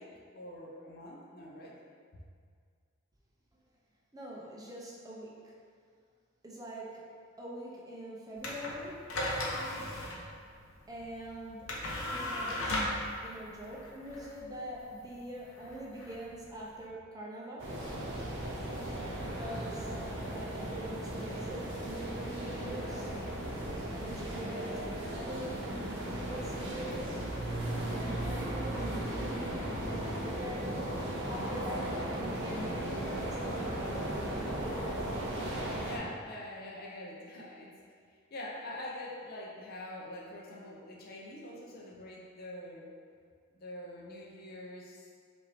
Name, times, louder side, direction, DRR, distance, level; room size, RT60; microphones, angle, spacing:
voice 1, 0.0-1.8 35.3-37.7 38.1-42.9 43.5-45.1, left 1 dB, 50° left, -4 dB, 0.6 m, -45 dB
voice 2, 4.1-5.5 6.4-7.1 7.4-9.0 10.9-11.8 12.1-12.9 13.2-17.8 19.1-19.9 20.3-23.1 23.9-27.2 27.8-31.0 31.3-33.1 33.4-34.7, equal, 20° right, -4 dB, 0.5 m, -44 dB
sound 1, 8.4-16.9, left 1 dB, 90° left, 0.8 m, -37 dB
sound 2, 17.6-36.0, right 1 dB, 60° right, 0.8 m, -36 dB
5.5 x 2.6 x 3.4 m, 2.1 s
head